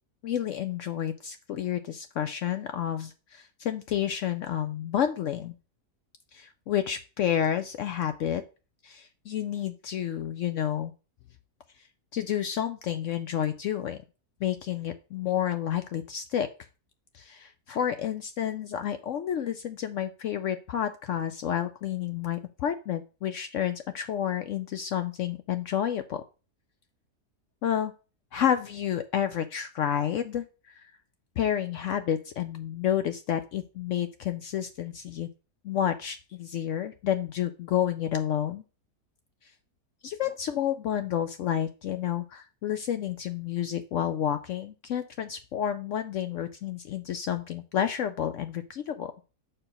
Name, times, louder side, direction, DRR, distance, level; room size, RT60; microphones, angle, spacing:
voice 1, 0.2-5.5 6.3-8.4 8.8-10.9 12.1-14.0 14.4-16.5 17.1-26.2 27.6-27.9 28.3-30.8 31.4-35.3 35.6-38.6 40.0-49.1, left 10 dB, 70° left, 9 dB, 0.7 m, -30 dB
5.9 x 4.5 x 5.0 m, 0.33 s
omnidirectional pair, 1.7 m